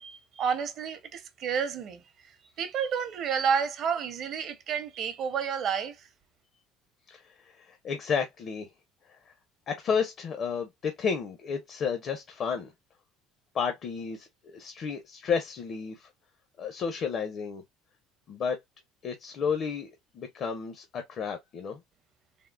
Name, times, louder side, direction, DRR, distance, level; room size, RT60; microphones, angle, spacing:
voice 1, 0.0-2.0 2.6-5.9, right 7 dB, 50° right, 0.6 m, -30 dB
voice 2, 7.6-8.7 9.7-12.7 13.5-16.1 16.6-17.6 18.3-18.6 19.0-19.9 20.2-21.8, left 6 dB, 45° left, 0.6 m, -31 dB
3.5 x 2.1 x 2.3 m
cardioid pair, 120°, 0 cm